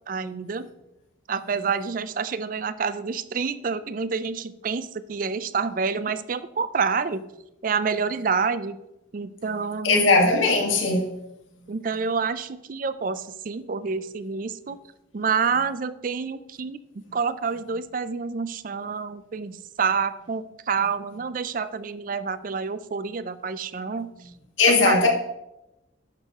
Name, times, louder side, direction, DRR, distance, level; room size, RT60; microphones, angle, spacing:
voice 1, 0.1-0.7 1.3-7.2 7.6-8.8 9.1-10.1 11.7-14.8 15.1-24.1 24.7-25.1, right 5 dB, 45° right, 0.4 m, -28 dB
voice 2, 9.8-11.1 24.6-25.1, left 3 dB, 90° left, 1.7 m, -19 dB
10.5 x 6.5 x 3.6 m
head